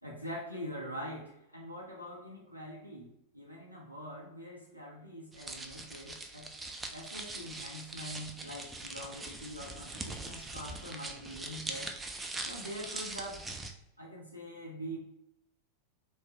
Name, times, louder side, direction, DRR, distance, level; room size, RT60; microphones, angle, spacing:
voice 1, 0.0-6.5 6.9-11.9 12.4-13.4 14.0-15.0, equal, 90° left, -3 dB, 0.5 m, -44 dB
sound 1, 5.3-13.7, right 2 dB, 10° right, 0.3 m, -42 dB
3.0 x 2.0 x 2.8 m, 0.81 s
figure-of-eight pair, 90°, 0 cm